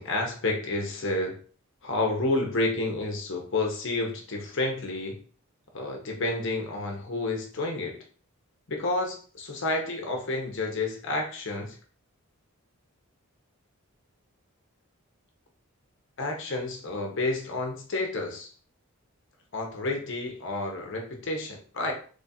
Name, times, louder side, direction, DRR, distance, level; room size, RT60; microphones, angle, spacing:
voice 1, 0.0-1.4 1.8-5.2 5.7-8.0 8.7-11.8 16.2-18.5 19.5-21.9, left 2 dB, 55° left, 0.7 m, -30 dB
3.1 x 2.4 x 4.1 m
head